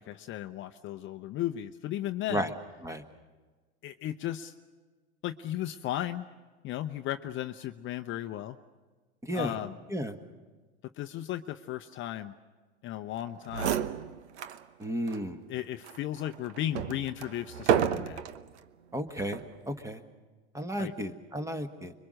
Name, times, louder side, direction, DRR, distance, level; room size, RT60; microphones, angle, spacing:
voice 1, 0.0-2.5 3.8-4.5 5.2-6.3 6.6-8.6 9.3-9.8 10.9-12.3 12.8-13.8 15.5-18.2 20.8-20.9, left 12 dB, 35° left, 8 dB, 0.8 m, -35 dB
voice 2, 9.2-9.5 9.9-10.1 14.8-15.4 18.9-19.4 19.7-20.0 20.5-21.9, equal, 10° right, 8 dB, 1.6 m, -33 dB
sound 1, 13.2-13.3 13.5-14.6 15.1-15.2 15.8-18.4 19.2-19.6, right 9 dB, 75° right, 1.1 m, -31 dB
26.0 x 23.0 x 6.5 m, 1.4 s
hypercardioid pair, 105°, 34 cm